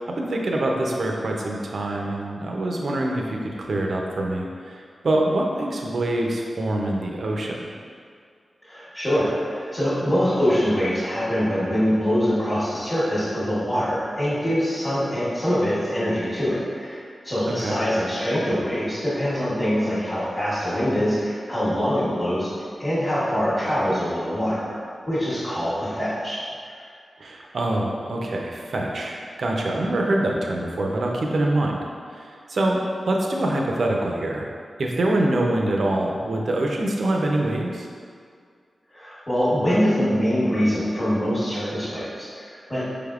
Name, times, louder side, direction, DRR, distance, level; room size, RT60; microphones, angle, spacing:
voice 1, 0.0-7.7 17.5-17.8 27.2-31.8 32.1-34.5 34.8-37.9, right 1 dB, 60° right, 0 dB, 0.5 m, -25 dB
voice 2, 8.6-22.5 22.8-24.8 25.1-26.4 26.6-26.9 38.9-42.9, equal, 20° left, -13 dB, 1.0 m, -24 dB
4.9 x 3.4 x 2.4 m, 2.2 s
wide cardioid pair, 150°, 0 cm